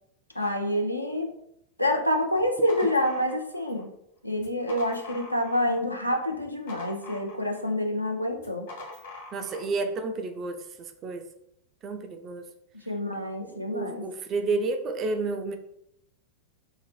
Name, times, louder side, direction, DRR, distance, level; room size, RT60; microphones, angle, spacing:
voice 1, 0.3-1.3 1.8-3.9 4.2-8.7 12.7-14.0, left 1 dB, 90° left, 2 dB, 0.4 m, -27 dB
sound 1, 2.3-3.8 4.3-5.8 6.1-7.7 8.4-9.7, left 2 dB, 60° left, 1.1 m, -44 dB
voice 2, 9.3-11.3 11.8-12.5 13.4-15.6, right 3 dB, 30° right, 6 dB, 0.3 m, -31 dB
2.7 x 2.1 x 3.2 m, 0.76 s
figure-of-eight pair, 90°, 0 cm